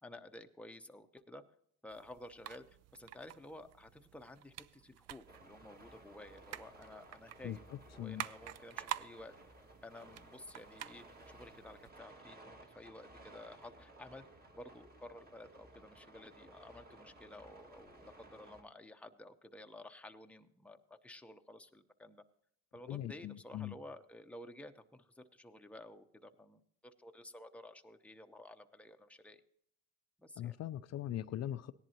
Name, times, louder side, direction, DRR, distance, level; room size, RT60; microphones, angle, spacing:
voice 1, 0.0-1.4 1.8-9.3 9.8-14.3 14.5-22.2 22.7-29.4 30.2-30.6, left 1 dB, 5° left, 6 dB, 0.8 m, -53 dB
sound 1, 1.9-11.9, right 12 dB, 55° right, 0.5 m, -49 dB
sound 2, 5.3-18.6, right 2 dB, 30° right, 1.9 m, -58 dB
voice 2, 22.9-23.7 30.4-31.7, left 12 dB, 60° left, 11 dB, 0.5 m, -40 dB
17.5 x 10.5 x 2.9 m, 0.71 s
cardioid pair, 90°, 30 cm